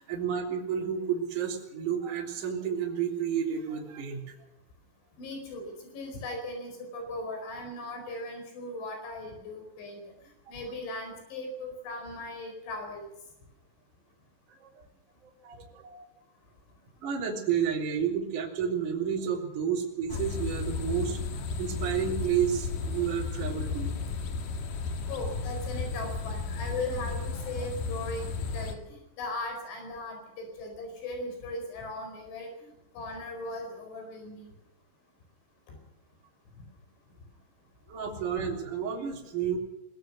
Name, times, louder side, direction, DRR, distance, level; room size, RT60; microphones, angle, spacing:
voice 1, 0.0-4.4 14.5-14.8 15.2-16.0 17.0-21.2 21.6-23.9 37.9-39.6, right 8 dB, 45° right, -1 dB, 4.6 m, -31 dB
voice 2, 5.2-10.0 10.5-13.1 25.1-32.7 33.0-34.5, left 2 dB, 80° left, 4 dB, 7.1 m, -38 dB
sound 1, 20.1-28.7, left 4 dB, 55° left, 2.9 m, -34 dB
22.5 x 20.0 x 6.3 m, 0.91 s
omnidirectional pair, 5.4 m